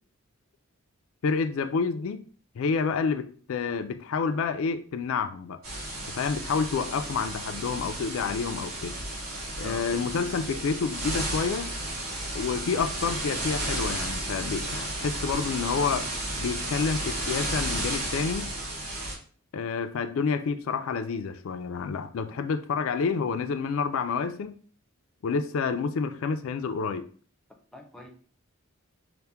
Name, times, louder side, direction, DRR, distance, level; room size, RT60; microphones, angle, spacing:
voice 1, 1.2-2.2 2.6-5.6 6.1-9.0 9.6-11.7 12.3-16.1 16.4-18.5 19.5-24.6 25.2-27.1, left 5 dB, 65° left, 0.3 m, -29 dB
sound 1, 5.6-19.1, right 1 dB, 70° right, 1.9 m, -33 dB
voice 2, 9.6-10.2 27.7-28.1, left 2 dB, 5° left, 0.5 m, -44 dB
5.6 x 2.1 x 3.4 m
head